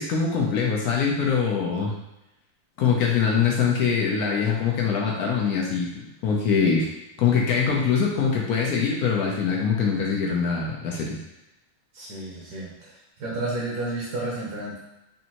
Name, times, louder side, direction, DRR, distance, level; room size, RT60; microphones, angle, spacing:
voice 1, 0.0-1.9 2.8-6.9 7.2-11.2, left 6 dB, 70° left, -1 dB, 0.9 m, -23 dB
voice 2, 11.9-12.9 13.2-14.8, right 2 dB, 60° right, -5 dB, 1.3 m, -31 dB
5.2 x 2.6 x 2.9 m, 0.92 s
omnidirectional pair, 2.3 m